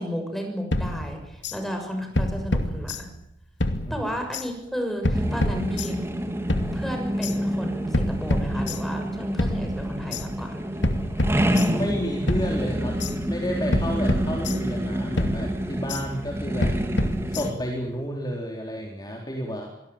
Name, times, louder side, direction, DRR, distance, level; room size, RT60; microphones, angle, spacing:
voice 1, 0.0-3.1 3.9-6.0 6.7-10.6 16.0-16.3, equal, ahead, 4 dB, 6.6 m, -33 dB
sound 1, 0.7-1.6 2.1-3.3 3.6-4.5 5.0-6.1 6.5-7.4 7.9-9.1 9.4-10.2 10.8-12.0 12.3-13.1 13.7-14.9 15.2-16.0 16.6-17.8, left 1 dB, 90° left, 2.4 m, -28 dB
sound 2, 5.1-17.5, equal, 15° right, 2.8 m, -28 dB
voice 2, 11.7-13.0 13.3-16.7 17.3-19.7, equal, 25° left, 0 dB, 3.9 m, -31 dB
25.0 x 19.0 x 8.9 m, 0.80 s
head